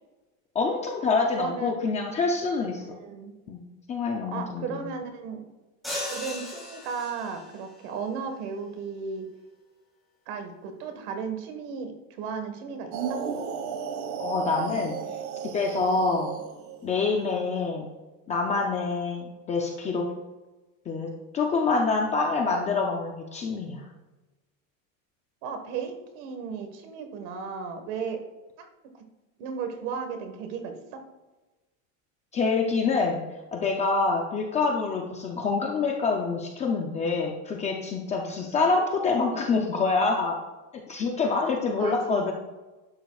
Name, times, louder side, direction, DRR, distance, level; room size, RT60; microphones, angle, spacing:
voice 1, 0.5-2.9 3.5-4.9 14.2-14.9 15.4-16.3 16.8-17.9 18.3-20.1 20.9-23.8 32.3-33.2 33.5-40.4 40.9-42.3, left 4 dB, 15° left, 1 dB, 0.4 m, -26 dB
voice 2, 1.3-1.8 2.9-3.3 4.3-5.5 6.1-9.2 10.3-13.3 25.4-28.2 28.6-28.7 29.4-31.0 41.8-42.3, right 6 dB, 55° right, 6 dB, 1.5 m, -35 dB
sound 1, 5.8-7.6, left 1 dB, ahead, 3.0 m, -36 dB
sound 2, 12.9-16.9, right 7 dB, 85° right, 1.5 m, -34 dB
11.5 x 10.5 x 2.3 m, 1.2 s
cardioid pair, 175°, 41 cm